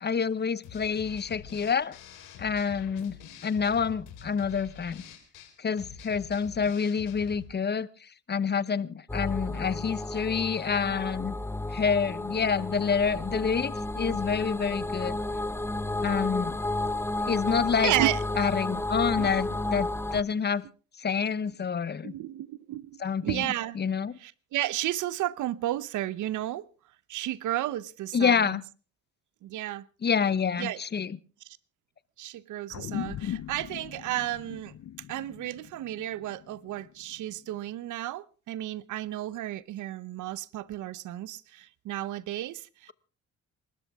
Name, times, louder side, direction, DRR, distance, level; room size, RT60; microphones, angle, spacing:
voice 1, 0.0-2.0 2.4-3.2 3.4-5.0 5.6-11.4 11.7-15.2 16.0-16.6 17.3-17.9 18.4-20.7 21.0-22.1 23.0-23.5 23.7-24.2 28.1-28.6 30.0-31.2, left 6 dB, 35° left, 0.9 m, -28 dB
sound 1, 0.6-7.5, left 7 dB, 90° left, 4.2 m, -47 dB
sound 2, 9.1-20.2, left 2 dB, 10° left, 0.8 m, -32 dB
voice 2, 17.8-18.2 19.2-19.3 22.0-23.8 24.2-26.6 27.1-28.5 29.4-29.8 30.6-30.8 32.2-34.7 35.1-42.9, right 14 dB, 80° right, 0.8 m, -32 dB
sound 3, 32.7-37.5, left 10 dB, 60° left, 0.9 m, -39 dB
28.5 x 13.0 x 3.6 m
cardioid pair, 90°, 30 cm